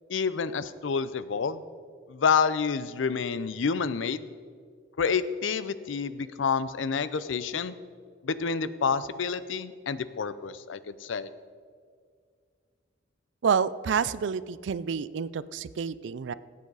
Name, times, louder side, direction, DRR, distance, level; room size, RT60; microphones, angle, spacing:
voice 1, 0.1-1.6 2.1-4.2 5.0-7.7 8.2-11.3, left 5 dB, 80° left, 15 dB, 0.5 m, -28 dB
voice 2, 13.4-16.3, right 6 dB, 70° right, 17 dB, 0.4 m, -28 dB
17.5 x 8.4 x 4.0 m, 2.1 s
head